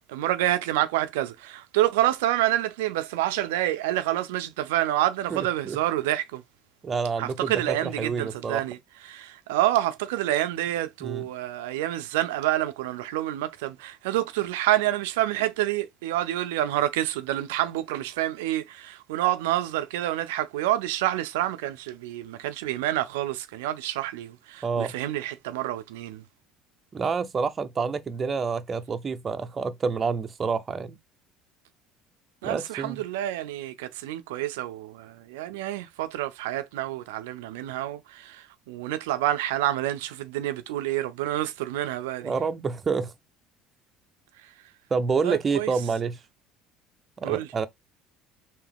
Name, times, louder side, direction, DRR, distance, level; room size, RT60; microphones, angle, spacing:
voice 1, 0.1-6.4 7.2-8.8 9.0-26.2 32.4-42.3 45.2-45.7 47.2-47.5, right 14 dB, 90° right, 0.4 m, -28 dB
voice 2, 5.3-5.8 6.8-8.6 11.0-11.2 24.6-24.9 26.9-31.0 32.4-33.0 42.2-43.1 44.9-46.2 47.2-47.7, right 5 dB, 35° right, 0.6 m, -28 dB
3.5 x 2.7 x 3.4 m
supercardioid pair, 85°, 0 cm